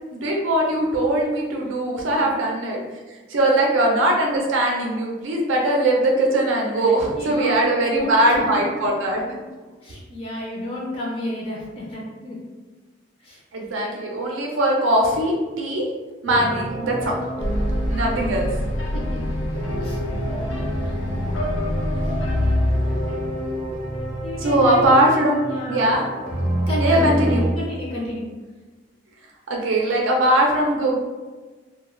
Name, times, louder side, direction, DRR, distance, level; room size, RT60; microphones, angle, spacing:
voice 1, 0.1-2.8 3.3-9.2 13.5-15.9 16.2-17.2 17.9-18.5 24.4-25.4 25.7-26.0 26.8-27.4 29.5-31.0, right 1 dB, 85° right, -1 dB, 0.5 m, -20 dB
voice 2, 6.8-8.9 9.2-9.5 9.8-12.4 13.2-13.4 18.9-19.4 19.8-20.0 20.3-21.0 21.9-22.1 24.2-25.9 26.7-28.3, left 1 dB, 30° left, -4 dB, 0.4 m, -31 dB
sound 1, 16.3-27.5, equal, 35° right, 0.5 m, -29 dB
sound 2, 17.4-24.7, left 1 dB, 75° left, 0.5 m, -26 dB
2.3 x 2.2 x 3.1 m, 1.3 s
head